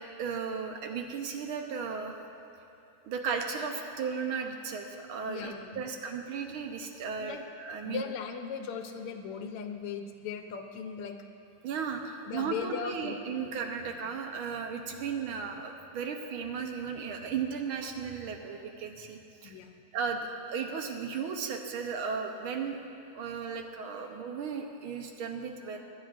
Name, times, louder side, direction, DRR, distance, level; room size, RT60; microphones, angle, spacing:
voice 1, 0.2-2.2 3.1-8.0 11.6-19.5 19.9-22.8 23.1-25.8, right 6 dB, 70° right, 3 dB, 1.7 m, -35 dB
voice 2, 5.3-5.9 7.2-7.4 7.8-11.2 12.3-13.5 19.4-19.8 22.9-23.0, left 6 dB, 90° left, 6 dB, 1.7 m, -38 dB
23.0 x 9.7 x 2.6 m, 2.9 s
omnidirectional pair, 2.4 m